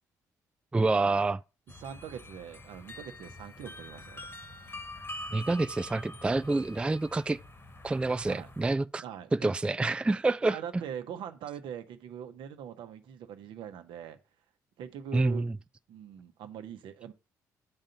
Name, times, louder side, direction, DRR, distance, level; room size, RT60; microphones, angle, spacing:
voice 1, 0.7-1.4 5.3-7.4 7.8-9.0 9.3-10.6 15.1-15.5, right 2 dB, 10° right, 0.3 m, -27 dB
sound 1, 1.7-8.7, left 1 dB, 25° left, 1.4 m, -45 dB
voice 2, 1.8-4.4 8.2-8.5 9.0-9.5 10.4-14.2 14.8-15.5 15.9-17.1, right 8 dB, 65° right, 1.0 m, -42 dB
8.8 x 3.8 x 5.6 m
hypercardioid pair, 50°, 9 cm